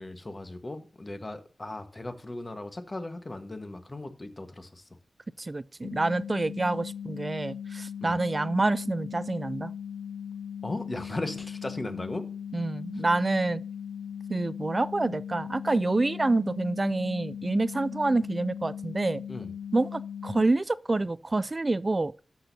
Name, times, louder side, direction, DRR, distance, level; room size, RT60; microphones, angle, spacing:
voice 1, 0.0-4.9 8.0-8.2 10.6-12.3 12.9-13.0 19.3-19.5, left 2 dB, 35° left, 1.3 m, -37 dB
voice 2, 5.4-9.7 12.5-13.6 14.3-19.2 19.7-22.1, right 2 dB, 35° right, 0.3 m, -27 dB
sound 1, 5.8-20.5, left 8 dB, 85° left, 0.8 m, -38 dB
13.0 x 6.2 x 2.7 m
cardioid pair, 50°, 0 cm